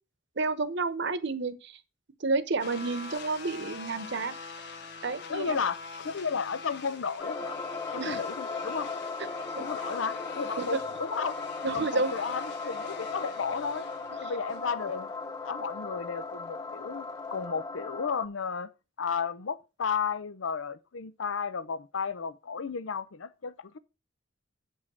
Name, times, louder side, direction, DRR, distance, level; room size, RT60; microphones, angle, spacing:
voice 1, 0.4-1.8 2.2-4.3 5.0-5.6 8.0-8.2 10.6-10.8 11.6-12.1, right 3 dB, 60° right, 0.9 m, -30 dB
sound 1, 2.6-17.5, left 4 dB, 60° left, 1.2 m, -44 dB
voice 2, 5.3-7.6 7.9-8.9 9.6-11.4 11.7-13.9 14.2-15.1 15.4-18.7 19.0-23.8, left 6 dB, 80° left, 0.6 m, -33 dB
sound 2, 7.2-18.3, left 4 dB, 20° left, 0.4 m, -37 dB
8.3 x 5.4 x 6.2 m
head